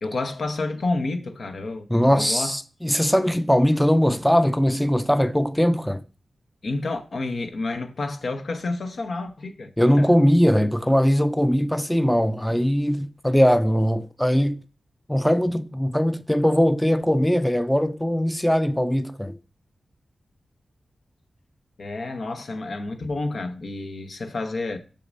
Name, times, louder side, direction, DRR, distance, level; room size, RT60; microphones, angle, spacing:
voice 1, 0.0-2.6 6.6-10.1 21.8-24.8, left 2 dB, 70° left, 0.9 m, -30 dB
voice 2, 1.9-6.0 9.8-14.6 15.1-19.4, equal, 5° left, 0.4 m, -20 dB
6.6 x 6.4 x 2.6 m
cardioid pair, 45°, 0 cm